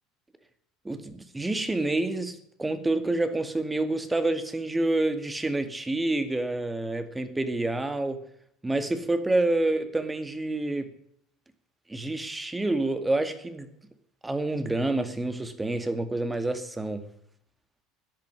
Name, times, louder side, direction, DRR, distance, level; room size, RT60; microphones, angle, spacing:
voice 1, 0.8-8.2 8.6-10.9 11.9-13.7 14.2-17.1, right 2 dB, 15° right, 10 dB, 2.2 m, -28 dB
13.5 x 10.5 x 7.5 m, 0.70 s
hypercardioid pair, 70°, 0 cm